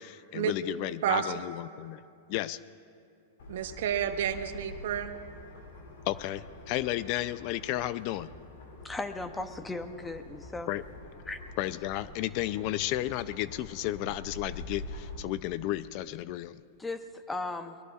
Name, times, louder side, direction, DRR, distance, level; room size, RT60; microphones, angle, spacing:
voice 1, 0.0-2.0 2.3-2.6 6.1-8.3 10.7-10.8 11.6-16.6, left 15 dB, 45° left, 16 dB, 0.4 m, -33 dB
voice 2, 1.0-1.4 3.5-5.1, right 9 dB, 70° right, 9 dB, 0.9 m, -30 dB
sound 1, 3.4-15.2, left 2 dB, 75° left, 2.6 m, -46 dB
voice 3, 8.8-10.7 11.3-11.4 16.8-17.8, left 2 dB, 10° left, 9 dB, 0.7 m, -37 dB
22.5 x 21.0 x 2.4 m, 2.4 s
supercardioid pair, 145°, 0 cm